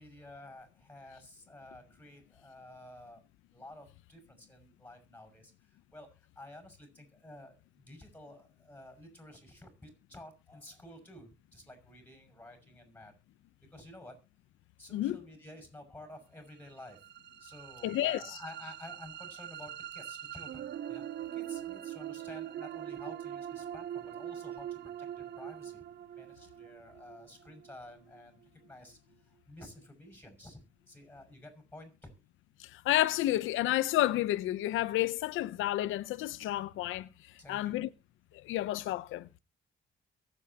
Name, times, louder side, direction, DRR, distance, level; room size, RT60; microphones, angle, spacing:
voice 1, 0.0-3.2 3.5-13.1 13.6-14.2 14.8-17.1 17.4-21.0 21.3-25.8 26.2-30.6 30.9-32.1 37.4-37.8, left 1 dB, 10° left, 6.2 m, -52 dB
sound 1, 16.6-28.7, right 11 dB, 60° right, 0.7 m, -43 dB
voice 2, 17.8-18.4 32.6-37.1 37.5-37.9 38.4-39.4, left 14 dB, 85° left, 0.7 m, -30 dB
22.5 x 8.2 x 2.8 m
cardioid pair, 90°, 20 cm